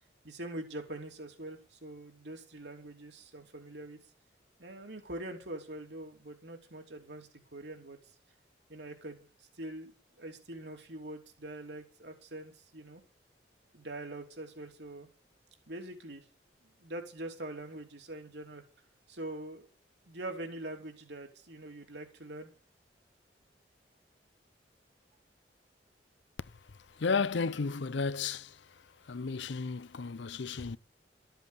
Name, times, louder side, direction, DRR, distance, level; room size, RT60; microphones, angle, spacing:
voice 1, 0.2-4.0 4.6-8.1 8.7-9.9 10.2-13.0 13.7-15.1 15.7-16.3 16.6-18.6 19.1-19.7 20.1-22.5, right 1 dB, 70° right, 3.1 m, -44 dB
voice 2, 26.9-28.6 29.1-30.8, left 4 dB, 85° left, 0.6 m, -33 dB
13.0 x 8.0 x 8.3 m
head